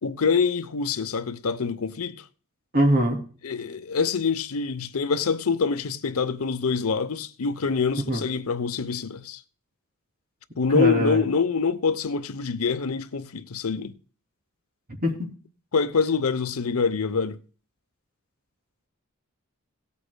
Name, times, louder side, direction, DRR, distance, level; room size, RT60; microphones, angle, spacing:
voice 1, 0.0-2.2 3.4-9.4 10.6-14.0 15.7-17.4, left 5 dB, 85° left, 0.8 m, -25 dB
voice 2, 2.7-3.2 8.0-8.2 10.7-11.2 15.0-15.3, equal, 45° right, 2.9 m, -22 dB
18.0 x 8.4 x 2.2 m
head